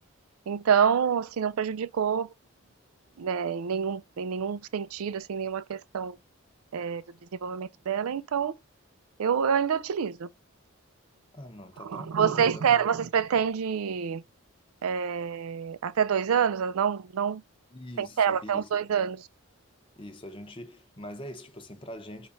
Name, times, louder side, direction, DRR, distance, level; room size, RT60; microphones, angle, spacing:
voice 1, 0.5-2.3 3.2-6.2 6.7-7.0 7.4-8.5 9.2-10.3 11.8-14.2 14.8-17.4 18.0-19.2, right 7 dB, 85° right, 0.4 m, -27 dB
voice 2, 11.3-12.8 17.7-18.7 20.0-22.3, equal, 25° left, 0.7 m, -43 dB
4.4 x 2.5 x 4.0 m
head